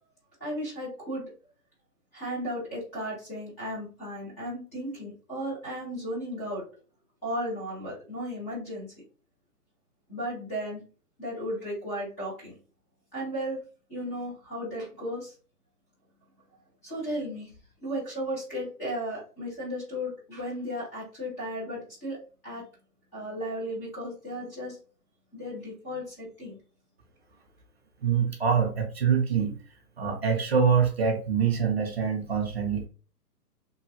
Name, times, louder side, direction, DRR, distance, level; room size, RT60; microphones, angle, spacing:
voice 1, 0.4-1.2 2.1-6.6 7.2-8.9 10.1-10.8 11.2-12.5 13.1-13.6 13.9-15.3 16.8-17.5 17.8-22.2 22.4-22.6 23.1-24.8 25.3-26.6, equal, 10° left, -8 dB, 0.6 m, -35 dB
voice 2, 28.0-29.6 30.0-32.9, right 6 dB, 40° right, 2 dB, 0.6 m, -25 dB
3.1 x 2.3 x 2.6 m, 0.37 s
hypercardioid pair, 150°, 48 cm